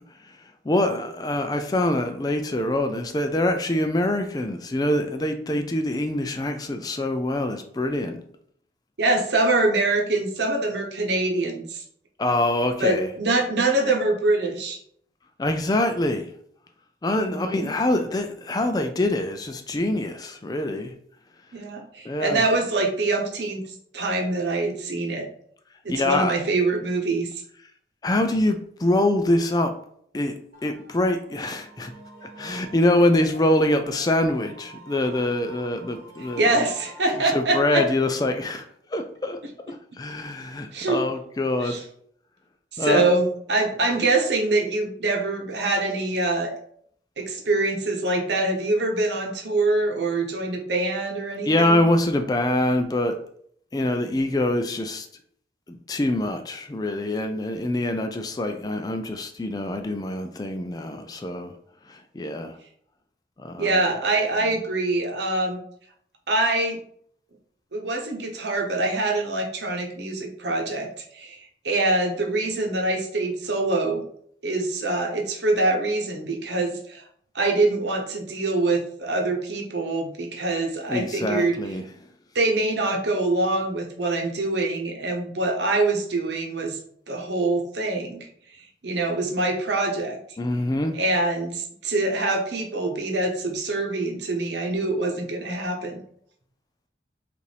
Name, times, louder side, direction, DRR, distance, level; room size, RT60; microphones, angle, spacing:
voice 1, 0.6-8.2 12.2-13.1 15.4-16.3 17.0-20.9 22.0-22.4 25.9-26.3 28.0-29.7 30.1-30.3 30.6-31.9 32.2-36.5 37.1-38.7 38.9-39.4 39.7-41.8 42.8-43.0 51.4-53.2 53.7-55.1 55.7-61.5 61.9-62.6 63.4-63.8 80.9-81.8 90.4-91.0, left 1 dB, 20° left, 6 dB, 0.3 m, -24 dB
voice 2, 9.0-11.8 12.8-14.8 17.3-17.7 21.5-23.6 23.9-25.3 25.8-27.4 36.4-37.8 40.7-41.0 41.6-41.8 42.7-46.5 47.2-51.8 63.6-65.6 66.3-66.8 67.7-70.9 71.1-71.4 71.6-74.0 74.4-77.0 77.3-81.6 82.3-86.8 87.1-88.3 88.8-90.2 90.9-96.0, right 2 dB, 85° right, 1 dB, 0.9 m, -24 dB
sound 1, 30.5-37.4, right 1 dB, 50° right, 1.1 m, -46 dB
5.2 x 2.6 x 3.3 m, 0.65 s
head